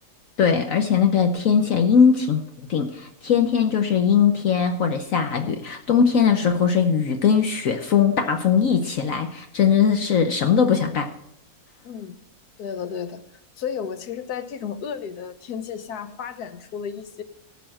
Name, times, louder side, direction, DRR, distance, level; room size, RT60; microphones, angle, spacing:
voice 1, 0.4-2.4 2.7-11.1, left 7 dB, 65° left, 6 dB, 1.1 m, -20 dB
voice 2, 11.8-12.2 12.6-13.2 13.6-17.2, left 7 dB, 80° left, 11 dB, 1.4 m, -33 dB
13.5 x 5.6 x 7.6 m, 0.79 s
omnidirectional pair, 1.6 m